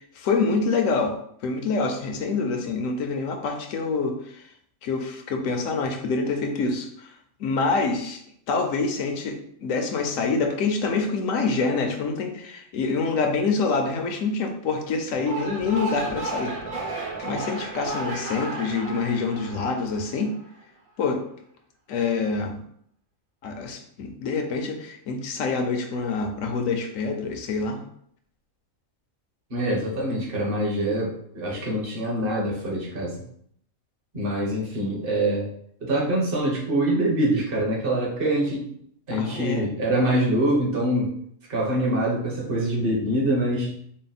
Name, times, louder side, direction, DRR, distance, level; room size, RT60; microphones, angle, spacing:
voice 1, 0.1-1.2 1.4-4.5 4.8-8.2 8.5-16.5 16.9-20.3 21.0-21.2 21.9-22.6 23.4-27.8 39.1-39.7, left 4 dB, 75° left, 5 dB, 1.0 m, -26 dB
sound 1, 15.1-20.5, right 2 dB, 75° right, 1.3 m, -33 dB
voice 2, 29.5-33.2 34.1-35.5 35.8-38.7 39.1-41.1 41.5-43.7, right 1 dB, 45° right, -3 dB, 1.2 m, -24 dB
4.2 x 2.0 x 4.0 m, 0.67 s
omnidirectional pair, 1.4 m